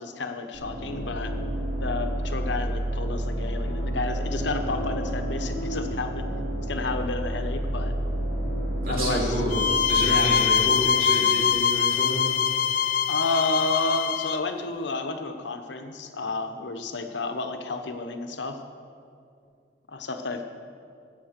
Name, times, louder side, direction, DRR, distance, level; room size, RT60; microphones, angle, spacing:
voice 1, 0.0-1.3 1.8-6.2 6.7-7.9 8.9-9.4 10.0-10.4 13.1-18.6 19.9-20.4, left 3 dB, 75° left, 6 dB, 1.0 m, -31 dB
sound 1, 0.5-11.3, right 1 dB, 75° right, 3.9 m, -30 dB
voice 2, 8.8-9.5 9.9-12.3, equal, 50° right, -5 dB, 3.6 m, -29 dB
sound 2, 9.5-14.4, left 7 dB, 45° left, 0.3 m, -23 dB
14.0 x 8.4 x 6.6 m, 2.3 s
head